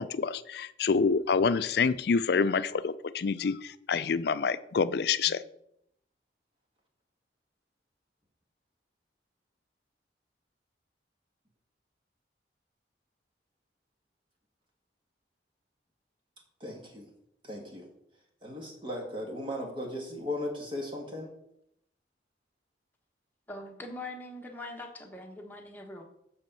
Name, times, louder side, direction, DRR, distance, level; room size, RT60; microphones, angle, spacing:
voice 1, 0.0-5.4, left 5 dB, 60° left, 15 dB, 0.4 m, -27 dB
voice 2, 16.6-17.1 17.4-17.9 18.4-21.3, left 1 dB, 30° right, 1 dB, 1.5 m, -37 dB
voice 3, 23.5-26.0, left 2 dB, 10° left, 1 dB, 1.2 m, -42 dB
8.2 x 4.3 x 6.7 m, 0.76 s
head